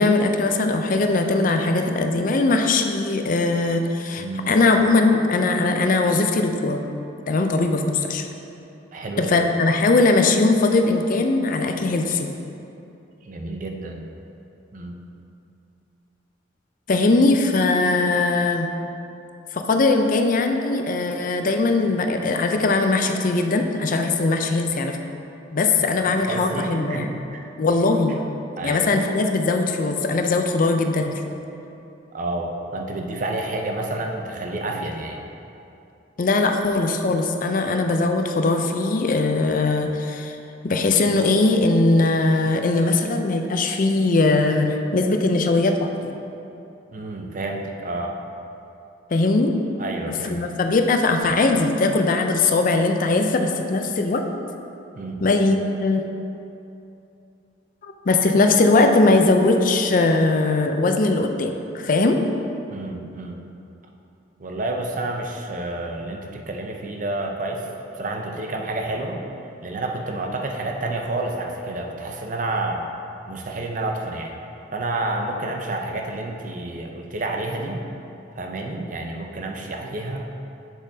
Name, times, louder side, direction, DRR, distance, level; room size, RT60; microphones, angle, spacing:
voice 1, 0.0-6.8 7.3-8.3 9.2-12.3 16.9-18.7 19.5-25.0 25.5-27.2 27.6-28.2 28.6-31.2 36.2-40.4 40.6-46.2 49.1-49.5 50.1-54.2 55.2-56.1 57.8-62.2, left 3 dB, 45° left, 5 dB, 0.5 m, -20 dB
voice 2, 4.2-4.5 8.9-9.5 13.2-14.1 14.7-15.0 25.8-27.1 27.4-27.5 28.6-28.9 32.1-35.3 46.9-48.2 49.8-50.4 54.9-55.3 62.7-63.4 64.4-67.6 68.0-69.2 69.6-72.9 73.3-74.4 74.7-77.8 78.4-80.3, right 2 dB, 45° right, 2 dB, 0.6 m, -29 dB
7.4 x 7.1 x 2.7 m, 2.8 s
head